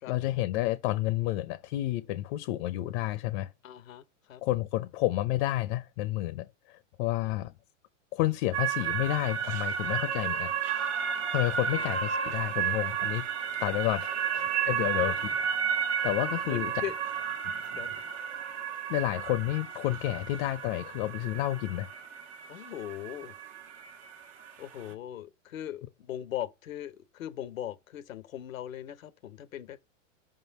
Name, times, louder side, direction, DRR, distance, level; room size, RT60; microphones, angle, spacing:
voice 1, 0.1-3.5 4.4-7.5 8.1-10.5 11.3-13.3 13.6-15.2 16.0-16.7 18.9-21.9, left 16 dB, 45° left, 0.6 m, -30 dB
voice 2, 3.6-4.4 7.2-7.4 11.7-11.9 14.9-15.1 16.4-16.9 17.7-17.9 22.5-23.3 24.6-29.8, left 11 dB, 85° left, 0.8 m, -39 dB
sound 1, 8.5-24.9, right 8 dB, 55° right, 1.3 m, -32 dB
5.4 x 3.7 x 5.3 m
hypercardioid pair, 115°, 39 cm